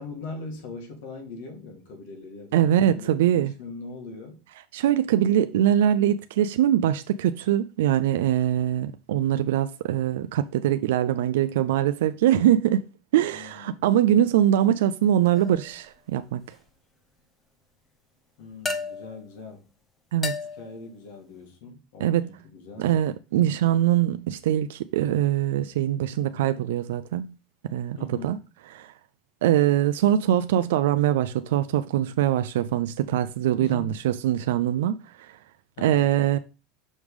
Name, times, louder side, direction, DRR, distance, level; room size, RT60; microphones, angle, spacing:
voice 1, 0.0-4.4 13.3-13.8 18.4-19.7 20.6-22.8 28.0-28.4 33.6-34.0 35.8-36.0, left 3 dB, 80° left, 2.0 m, -41 dB
voice 2, 2.5-3.5 4.7-12.8 13.1-16.4 20.1-20.3 22.0-22.3 22.8-27.3 27.7-28.0 28.2-28.4 28.7-28.9 29.4-35.3 35.8-36.4, right 11 dB, 90° right, 0.3 m, -23 dB
sound 1, 15.3-15.8 18.7-19.3 20.2-20.8, left 3 dB, 20° left, 0.7 m, -33 dB
6.3 x 3.5 x 4.8 m
supercardioid pair, 150°, 0 cm